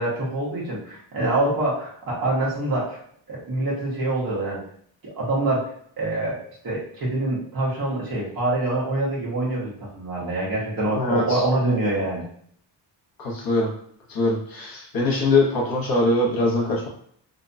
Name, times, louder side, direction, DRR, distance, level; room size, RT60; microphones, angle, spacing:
voice 1, 0.0-3.0 3.3-4.6 5.0-5.7 6.0-12.2, right 2 dB, 50° right, -6 dB, 1.1 m, -25 dB
voice 2, 10.9-11.4 13.2-13.7 14.1-16.9, left 2 dB, 55° left, -3 dB, 0.9 m, -22 dB
2.6 x 2.2 x 2.6 m, 0.64 s
wide cardioid pair, 180°, 44 cm